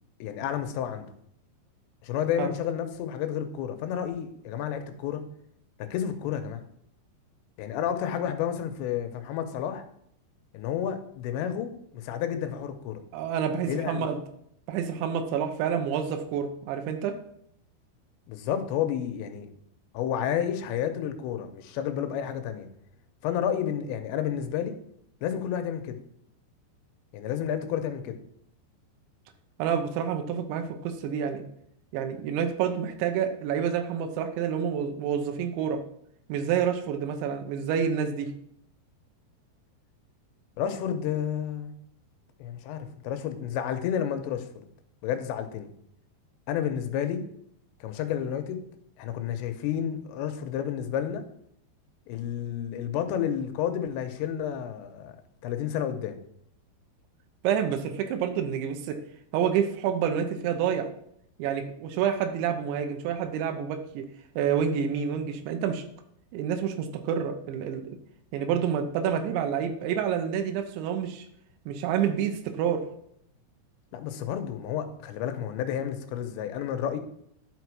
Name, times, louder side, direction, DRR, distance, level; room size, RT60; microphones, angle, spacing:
voice 1, 0.2-1.1 2.0-5.2 5.8-6.6 7.6-9.8 10.5-13.0 13.7-14.1 18.3-19.5 19.9-22.7 23.2-24.8 25.2-26.0 27.1-28.2 40.6-41.7 42.4-44.7 45.0-45.7 46.5-47.2 47.8-48.6 49.0-51.2 52.1-55.1 55.4-56.2 73.9-77.0, left 9 dB, 80° left, 7 dB, 3.0 m, -31 dB
voice 2, 13.1-14.2 14.7-17.2 29.6-31.4 31.9-35.8 36.3-38.3 57.4-59.0 59.3-60.9 61.4-64.0 64.4-65.8 66.3-67.8 68.3-71.3 71.7-72.8, right 8 dB, 80° right, 6 dB, 3.2 m, -28 dB
11.0 x 5.6 x 4.7 m, 0.71 s
omnidirectional pair, 5.3 m